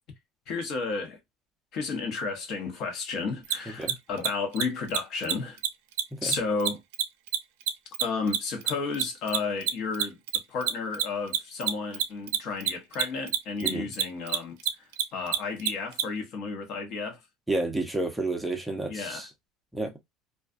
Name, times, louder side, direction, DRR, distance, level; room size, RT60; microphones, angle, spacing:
voice 1, 0.5-1.2 1.7-5.6 6.2-6.8 8.0-10.2 10.5-17.2 18.9-19.2, left 4 dB, 55° left, 0.9 m, -32 dB
Mechanisms, 3.4-3.5 3.8-4.3 4.5-4.6 4.9-5.0 5.2-5.3 5.6-5.7 6.0-8.7 8.9-16.0, right 11 dB, 85° right, 0.4 m, -26 dB
voice 2, 13.6-13.9 17.5-19.3 19.7-19.9, right 2 dB, 5° right, 0.6 m, -30 dB
2.4 x 2.3 x 2.4 m
supercardioid pair, 125°, 0 cm